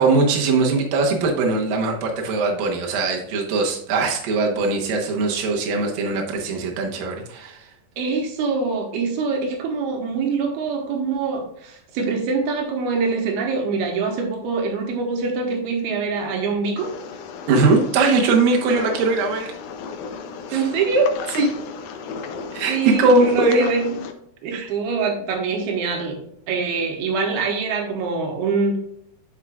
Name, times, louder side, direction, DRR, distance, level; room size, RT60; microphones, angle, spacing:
voice 1, 0.0-7.6 17.5-19.5 20.5-20.7 21.4-21.5 22.5-23.6 24.5-24.7, right 3 dB, 70° right, 0 dB, 2.7 m, -20 dB
voice 2, 8.0-16.9 20.5-21.1 22.7-24.0 24.4-26.2 26.5-28.8, right 4 dB, 90° right, 2 dB, 3.1 m, -24 dB
sound 1, 16.8-24.1, left 5 dB, 80° left, 2.5 m, -34 dB
11.5 x 4.8 x 2.4 m, 0.74 s
omnidirectional pair, 4.4 m